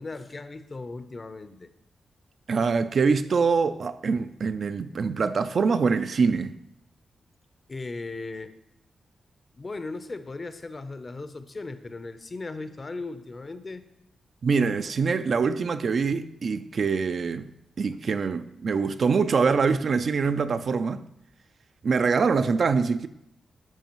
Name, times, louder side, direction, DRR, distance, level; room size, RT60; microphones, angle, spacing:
voice 1, 0.0-1.7 7.7-8.5 9.5-13.8 17.9-18.0, left 3 dB, 40° left, 0.6 m, -37 dB
voice 2, 2.5-6.5 14.4-17.5 17.8-21.0 21.8-23.1, right 5 dB, 60° right, 0.4 m, -24 dB
12.5 x 4.8 x 3.0 m
cardioid pair, 70°, 0 cm